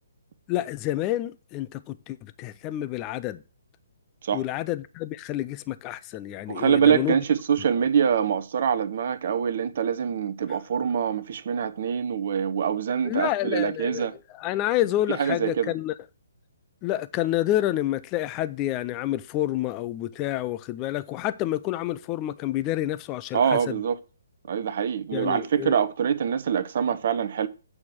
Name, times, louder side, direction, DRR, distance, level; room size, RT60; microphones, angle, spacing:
voice 1, 0.5-3.4 4.3-7.2 13.0-14.1 14.4-15.9 16.8-23.8 25.1-25.8, left 14 dB, 25° left, 0.6 m, -28 dB
voice 2, 6.5-14.1 15.1-15.7 23.3-24.0 24.5-27.5, right 7 dB, 50° right, 0.8 m, -24 dB
8.6 x 4.8 x 6.1 m
figure-of-eight pair, 135°, 0 cm